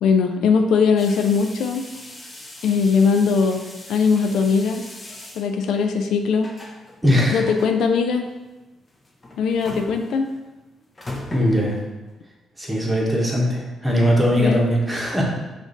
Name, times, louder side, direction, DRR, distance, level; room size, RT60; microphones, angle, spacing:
voice 1, 0.0-1.8 2.6-3.6 3.9-4.8 5.4-6.5 7.3-8.3 9.4-10.3 14.4-14.6, left 5 dB, 75° left, 5 dB, 0.4 m, -20 dB
sound 1, 1.0-12.1, left 1 dB, 20° left, 0.8 m, -40 dB
voice 2, 7.0-7.4 11.3-11.8 12.6-15.2, equal, 10° right, -3 dB, 1.2 m, -20 dB
5.0 x 2.6 x 3.9 m, 1.1 s
cardioid pair, 90°, 0 cm